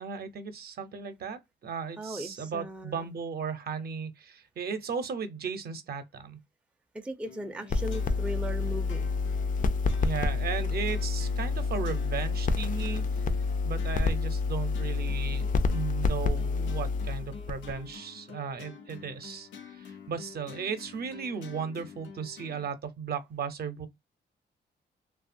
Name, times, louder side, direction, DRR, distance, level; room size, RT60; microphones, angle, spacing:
voice 1, 0.0-6.4 10.0-13.0 13.6-23.9, right 6 dB, 55° right, 0.6 m, -36 dB
voice 2, 2.0-3.1 6.9-9.1, right 1 dB, 5° right, 0.4 m, -38 dB
sound 1, 7.2-22.7, left 6 dB, 90° left, 0.7 m, -49 dB
sound 2, 7.7-17.9, left 4 dB, 45° left, 0.5 m, -28 dB
2.8 x 2.3 x 2.4 m
cardioid pair, 85°, 19 cm